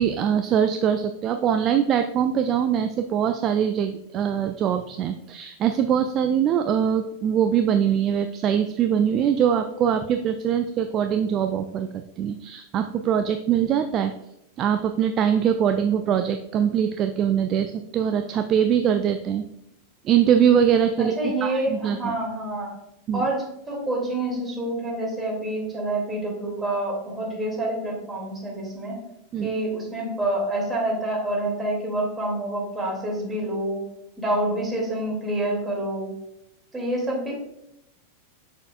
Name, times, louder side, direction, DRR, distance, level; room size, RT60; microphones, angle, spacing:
voice 1, 0.0-14.1 14.6-19.4 20.0-22.1 23.1-23.2 29.3-29.5, right 8 dB, 30° right, 8 dB, 0.4 m, -22 dB
voice 2, 21.2-22.7 23.1-29.0 29.4-33.8 34.2-36.1 36.7-37.3, right 1 dB, 10° right, -3 dB, 2.5 m, -27 dB
6.9 x 6.6 x 2.4 m, 0.83 s
figure-of-eight pair, 90°, 0 cm